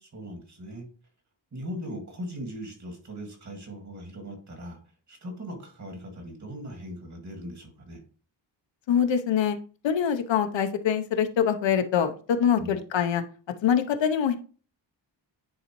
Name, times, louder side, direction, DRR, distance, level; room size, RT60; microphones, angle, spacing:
voice 1, 0.0-0.9 1.5-4.8 5.1-8.0 12.6-12.8, equal, 40° right, 3 dB, 1.9 m, -39 dB
voice 2, 8.9-9.6 9.8-13.2 13.6-14.4, left 8 dB, 75° left, 8 dB, 0.8 m, -24 dB
9.8 x 4.0 x 3.0 m, 0.38 s
wide cardioid pair, 165°, 45 cm